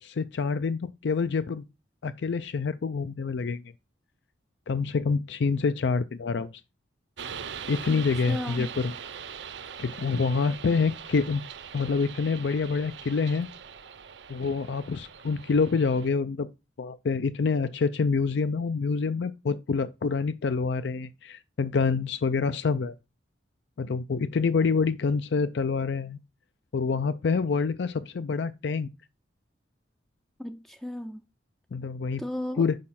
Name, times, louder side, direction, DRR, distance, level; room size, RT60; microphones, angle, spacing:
voice 1, 0.0-1.6 2.0-3.6 4.7-6.5 7.7-8.9 9.8-11.4 11.7-13.5 14.3-16.5 16.8-22.9 23.8-26.2 26.7-28.9 31.7-32.2 32.6-32.8, left 4 dB, 65° left, 0.4 m, -27 dB
sound 1, 7.2-16.1, right 7 dB, 70° right, 0.6 m, -42 dB
voice 2, 7.9-8.7 30.4-31.2 32.2-32.7, left 1 dB, ahead, 0.4 m, -35 dB
6.4 x 5.3 x 5.7 m
head